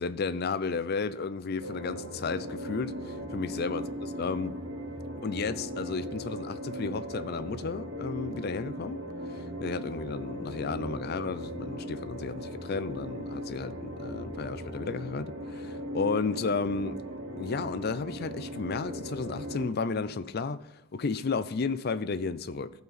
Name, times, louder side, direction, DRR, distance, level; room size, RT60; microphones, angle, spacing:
voice 1, 0.0-3.8 4.2-4.5 5.2-9.0 9.3-17.0 17.4-20.6 20.9-22.7, left 4 dB, 50° left, 0.5 m, -33 dB
sound 1, 1.6-19.7, equal, 70° right, 1.9 m, -38 dB
14.5 x 5.7 x 4.2 m
head